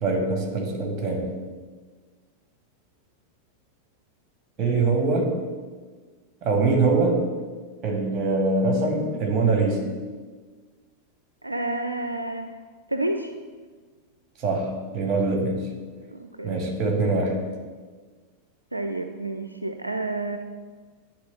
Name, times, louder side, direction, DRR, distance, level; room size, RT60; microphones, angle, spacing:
voice 1, 0.0-1.3 4.6-5.3 6.4-7.2 7.8-9.9 14.4-15.6 16.4-17.4, right 3 dB, 30° right, 2 dB, 1.9 m, -23 dB
voice 2, 11.4-12.6 12.9-13.3 15.1-15.3 16.1-16.6 18.7-20.4, right 2 dB, 85° right, 6 dB, 0.4 m, -30 dB
11.0 x 3.7 x 5.5 m, 1.5 s
figure-of-eight pair, 90°, 0 cm